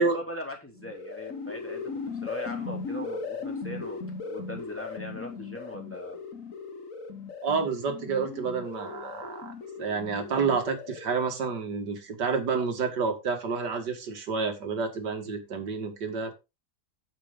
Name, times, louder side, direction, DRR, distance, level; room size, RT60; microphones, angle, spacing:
voice 1, 0.0-1.8 2.2-6.2, left 1 dB, 5° left, 1 dB, 2.9 m, -40 dB
sound 1, 0.8-11.3, left 4 dB, 55° left, 1.6 m, -38 dB
voice 2, 7.4-16.3, right 5 dB, 85° right, 6 dB, 2.4 m, -29 dB
8.8 x 7.9 x 3.9 m, 0.26 s
omnidirectional pair, 1.8 m